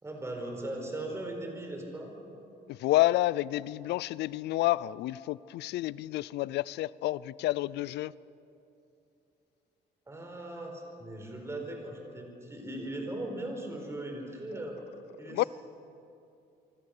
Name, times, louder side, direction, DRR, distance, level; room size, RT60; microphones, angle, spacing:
voice 1, 0.0-2.1 10.1-14.8 15.2-15.5, right 1 dB, 15° right, 2 dB, 4.6 m, -39 dB
voice 2, 2.7-8.1 15.3-15.4, left 16 dB, 90° left, 21 dB, 0.5 m, -29 dB
26.0 x 24.5 x 6.7 m, 2.7 s
cardioid pair, 140°, 17 cm